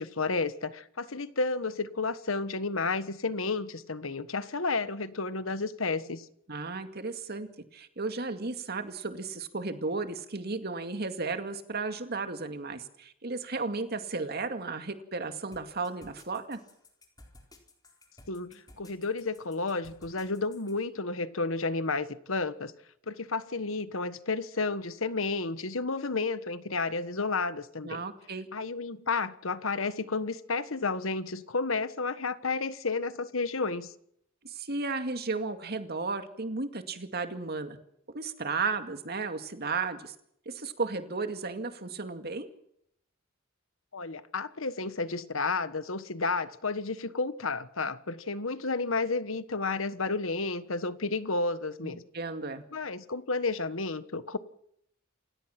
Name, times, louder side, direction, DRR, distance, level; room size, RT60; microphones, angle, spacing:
voice 1, 0.0-6.2 18.3-22.7 23.1-28.0 28.5-33.9 43.9-52.0 52.7-54.4, left 3 dB, 80° left, 1.4 m, -31 dB
voice 2, 6.5-7.5 7.7-16.6 27.8-28.5 34.4-37.8 38.1-40.1 40.5-42.5 51.8-52.6, right 3 dB, 50° right, 2.2 m, -34 dB
sound 1, 15.5-20.8, left 2 dB, 20° left, 4.1 m, -55 dB
28.5 x 17.0 x 6.0 m
head